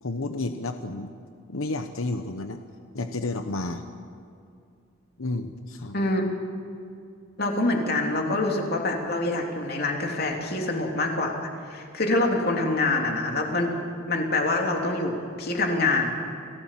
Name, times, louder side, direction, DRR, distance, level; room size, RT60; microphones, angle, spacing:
voice 1, 0.0-1.1 1.5-2.6 2.9-3.8 5.2-6.0, left 2 dB, 90° left, 7 dB, 1.1 m, -31 dB
voice 2, 5.9-6.2 7.4-11.3 11.7-13.7 14.1-16.1, left 2 dB, 50° left, 1 dB, 3.3 m, -25 dB
29.5 x 17.0 x 7.6 m, 2.5 s
head